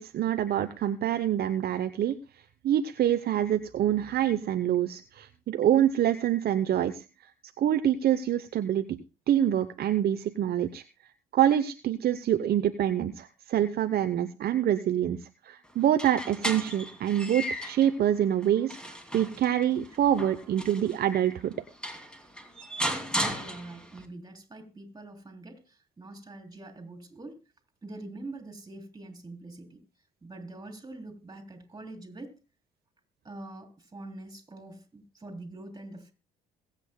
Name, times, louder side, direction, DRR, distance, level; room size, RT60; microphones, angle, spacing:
voice 1, 0.0-2.2 2.6-7.1 7.6-9.0 9.3-10.8 11.3-21.5, right 10 dB, 50° right, 10 dB, 0.8 m, -26 dB
sound 1, 15.8-17.9 18.4-21.0 21.5-21.6 21.8-24.0, equal, 5° left, 2.6 m, -35 dB
voice 2, 23.1-27.4 27.8-29.8 30.2-32.4 33.2-36.1, right 2 dB, 20° right, 6 dB, 3.5 m, -44 dB
22.0 x 8.3 x 2.2 m, 0.29 s
hypercardioid pair, 55°, 20 cm